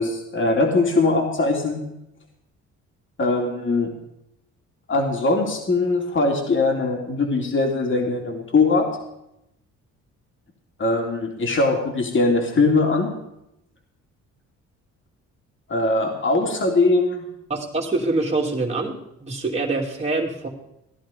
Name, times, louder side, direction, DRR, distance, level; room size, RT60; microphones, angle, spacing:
voice 1, 0.0-1.8 3.2-3.9 4.9-8.9 10.8-13.1 15.7-17.2, left 3 dB, 40° left, 1 dB, 3.1 m, -21 dB
voice 2, 17.5-20.5, right 3 dB, 20° right, -2 dB, 2.6 m, -25 dB
16.5 x 10.5 x 5.2 m, 0.83 s
cardioid pair, 90°, 30 cm